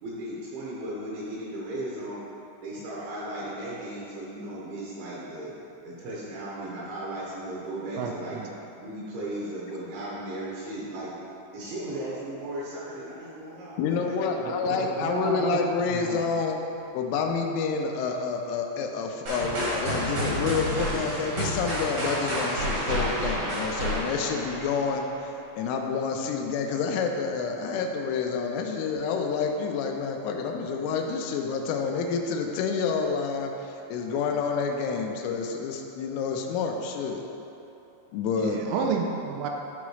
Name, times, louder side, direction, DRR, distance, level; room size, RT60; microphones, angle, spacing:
voice 1, 0.0-2.2 2.6-5.5 5.8-8.4 8.8-11.1 11.5-15.0 38.7-38.9, right 1 dB, 75° right, -6 dB, 3.2 m, -36 dB
voice 2, 8.0-8.5 14.4-16.2 38.3-39.5, right 5 dB, 90° right, 1 dB, 3.3 m, -31 dB
voice 3, 13.8-16.6 16.9-37.2 38.1-38.6, left 5 dB, 85° left, 3 dB, 2.9 m, -28 dB
sound 1, 16.7-17.3 19.4-22.0, equal, 65° left, 1.9 m, -43 dB
sound 2, 19.3-25.2, right 1 dB, 60° right, 1.7 m, -30 dB
12.0 x 4.8 x 3.1 m, 2.9 s
omnidirectional pair, 6.0 m